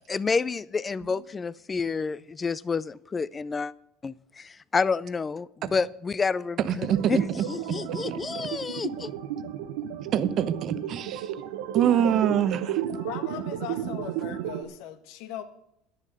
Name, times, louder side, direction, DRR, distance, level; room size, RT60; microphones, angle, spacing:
voice 1, 0.1-3.7 4.0-7.2 7.5-9.1, left 5 dB, 20° left, 20 dB, 0.4 m, -29 dB
voice 2, 6.6-7.4 7.8-8.2 10.1-11.3 11.7-12.8, right 9 dB, 40° right, 13 dB, 0.8 m, -25 dB
sound 1, 6.8-14.6, right 10 dB, 90° right, 1.3 m, -33 dB
voice 3, 12.9-15.4, left 10 dB, 70° left, 10 dB, 1.4 m, -39 dB
10.5 x 10.5 x 6.7 m, 0.80 s
cardioid pair, 150°, 0 cm